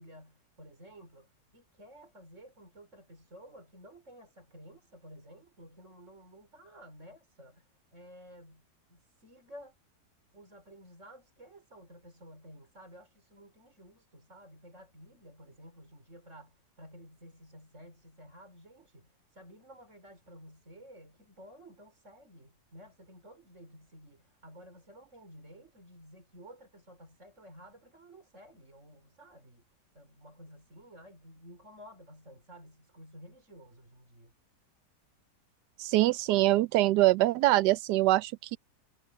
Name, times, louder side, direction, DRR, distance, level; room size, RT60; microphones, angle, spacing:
voice 1, 0.0-9.8 10.3-29.6 29.9-34.3, equal, 45° right, 5.5 m, -53 dB
voice 2, 35.8-38.6, right 17 dB, 80° right, 1.2 m, -24 dB
omnidirectional pair, 1.8 m